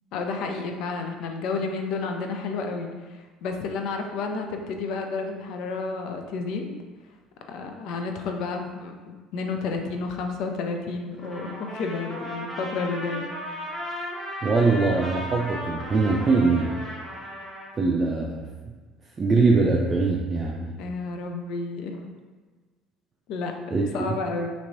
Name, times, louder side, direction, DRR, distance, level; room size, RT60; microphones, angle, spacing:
voice 1, 0.1-2.9 3.4-6.7 7.5-13.3 20.8-22.1 23.3-23.5 23.9-24.5, left 4 dB, 65° left, 4 dB, 0.4 m, -31 dB
Trumpet, 11.2-17.7, equal, 5° left, 1.3 m, -36 dB
voice 2, 14.4-16.9 17.8-18.4 19.2-20.7 23.7-24.2, right 3 dB, 35° right, -2 dB, 0.4 m, -22 dB
2.9 x 2.9 x 2.7 m, 1.4 s
hypercardioid pair, 65°, 0 cm